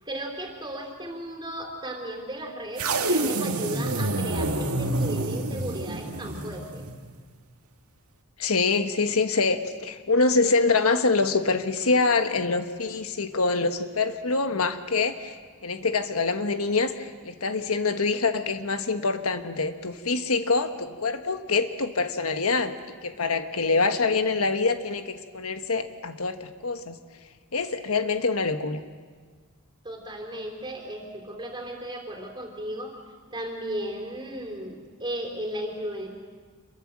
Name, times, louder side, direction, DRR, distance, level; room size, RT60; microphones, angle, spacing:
voice 1, 0.0-6.8 29.8-33.0 33.3-36.1, right 1 dB, 20° right, 2 dB, 3.9 m, -35 dB
sound 1, 2.8-7.1, right 2 dB, 90° right, 2.1 m, -28 dB
voice 2, 8.4-22.7 23.0-27.0 27.5-28.8, left 4 dB, 80° left, 8 dB, 1.3 m, -25 dB
26.5 x 23.0 x 7.5 m, 1.6 s
head